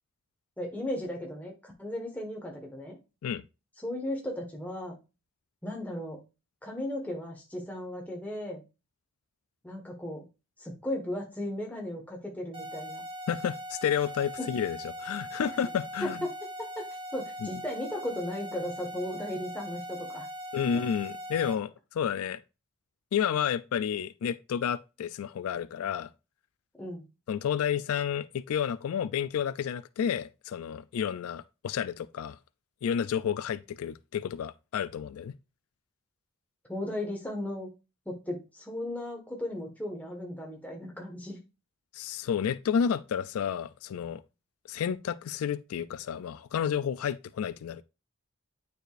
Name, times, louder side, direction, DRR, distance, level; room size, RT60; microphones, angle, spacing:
voice 1, 0.6-3.0 3.8-4.9 5.6-6.2 6.6-8.6 9.6-10.2 10.6-13.0 14.4-14.5 16.0-16.3 16.6-16.8 17.1-20.3 26.8-27.1 36.7-37.7 38.0-41.4, left 1 dB, 5° left, 1.4 m, -36 dB
sound 1, 12.5-21.5, equal, 25° right, 1.0 m, -40 dB
voice 2, 13.3-16.2 17.4-17.5 20.5-22.4 23.1-26.1 27.3-32.4 32.8-35.4 41.9-44.2 44.7-47.8, left 8 dB, 85° left, 0.3 m, -31 dB
9.0 x 4.9 x 2.5 m
head